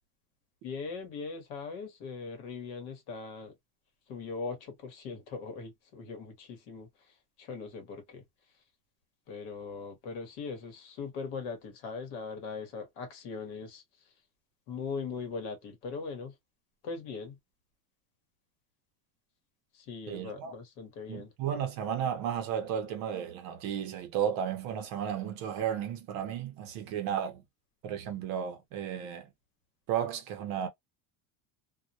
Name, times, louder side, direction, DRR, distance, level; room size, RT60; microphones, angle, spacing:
voice 1, 0.6-3.5 4.1-8.2 9.3-13.8 14.7-16.3 16.8-17.4 19.7-21.3, left 4 dB, 55° left, 1.1 m, -40 dB
voice 2, 20.1-20.5 21.1-27.4 27.8-29.3 29.9-30.7, right 9 dB, 45° right, 0.6 m, -33 dB
2.2 x 2.1 x 2.6 m
cardioid pair, 180°, 48 cm